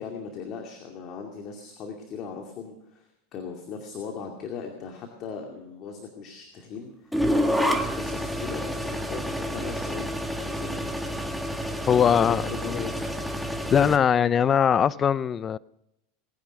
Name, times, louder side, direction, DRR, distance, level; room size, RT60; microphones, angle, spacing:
voice 1, 0.0-10.1 10.4-11.0 11.9-13.2, left 6 dB, 45° left, 2.4 m, -38 dB
sound 1, 7.1-14.0, equal, ahead, 1.6 m, -29 dB
voice 2, 11.9-12.4 12.7-12.8 13.7-15.6, left 8 dB, 30° left, 0.5 m, -21 dB
19.5 x 10.0 x 6.5 m
hypercardioid pair, 105°, 0 cm